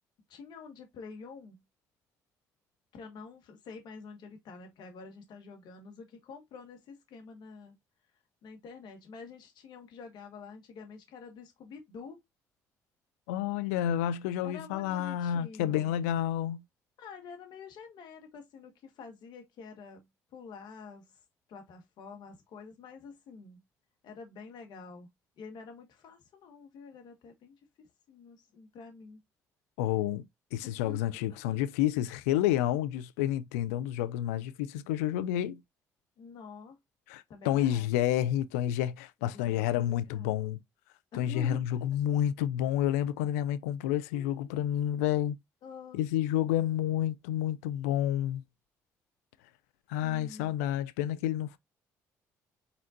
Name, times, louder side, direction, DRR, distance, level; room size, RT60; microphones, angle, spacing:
voice 1, 0.3-1.6 2.9-7.7 8.4-12.2 14.4-15.9 17.0-21.2 21.5-23.6 24.0-25.1 25.4-29.2 30.6-31.6 36.2-36.8 37.3-37.9 39.2-40.4 41.1-41.7 44.1-44.7 45.6-46.0 50.0-50.5, left 5 dB, 65° left, 1.6 m, -48 dB
voice 2, 13.3-16.6 29.8-30.2 30.5-35.6 37.1-40.6 41.2-45.4 45.9-48.4 49.9-51.6, left 11 dB, 90° left, 0.4 m, -29 dB
4.2 x 3.9 x 2.6 m
supercardioid pair, 60°, 8 cm